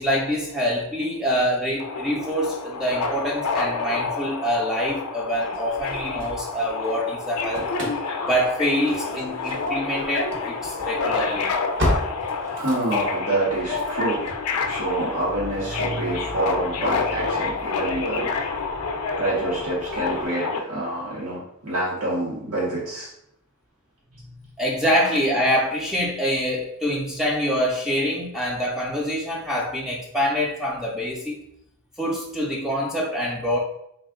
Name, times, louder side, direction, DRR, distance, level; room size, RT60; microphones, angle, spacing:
voice 1, 0.0-7.7 8.3-11.5 24.3-31.4 32.0-33.6, equal, ahead, -3 dB, 0.4 m, -25 dB
Subway metro underground, 1.8-20.6, left 4 dB, 70° left, 0.4 m, -28 dB
Engine starting / Slam, 5.5-6.9 7.2-20.3, equal, 55° right, 0.9 m, -35 dB
voice 2, 12.4-14.3 14.7-18.3 19.2-23.1, right 2 dB, 80° right, -7 dB, 1.0 m, -27 dB
3.4 x 2.3 x 3.6 m, 0.77 s
head